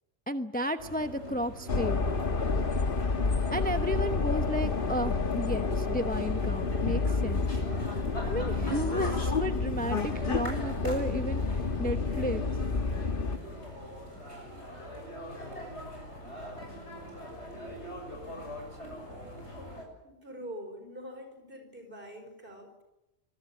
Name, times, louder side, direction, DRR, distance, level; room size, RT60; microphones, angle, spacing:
voice 1, 0.3-2.1 3.5-7.5 8.2-12.4, equal, 10° left, 8 dB, 0.8 m, -33 dB
sound 1, 0.8-19.8, left 1 dB, 65° left, 7.2 m, -43 dB
sound 2, 1.7-13.4, left 4 dB, 45° left, 1.7 m, -29 dB
voice 2, 20.0-22.8, equal, 45° right, 6 dB, 5.3 m, -44 dB
25.5 x 20.5 x 9.0 m, 0.97 s
omnidirectional pair, 1.2 m